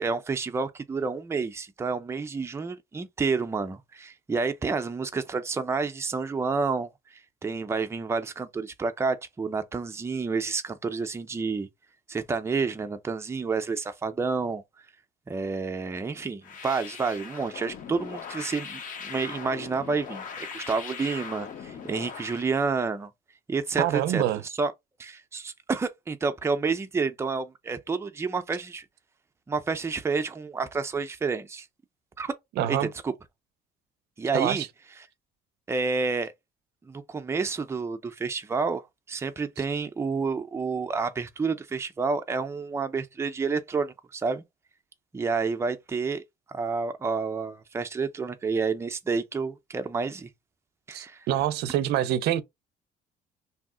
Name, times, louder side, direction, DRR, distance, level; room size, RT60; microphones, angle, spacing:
voice 1, 0.0-11.7 12.1-14.6 15.3-23.1 23.5-24.7 25.0-28.8 29.5-31.7 32.2-32.3 32.7-33.1 34.2-34.7 35.7-36.3 36.8-44.4 45.1-46.2 46.5-50.3 50.9-51.3, right 4 dB, 15° right, 0.4 m, -29 dB
sound 1, 16.4-22.5, left 6 dB, 50° left, 0.7 m, -40 dB
voice 2, 23.8-24.4 32.6-32.9 34.3-34.7 50.9-52.4, right 12 dB, 75° right, 0.4 m, -26 dB
2.7 x 2.0 x 3.6 m
cardioid pair, 110°, 17 cm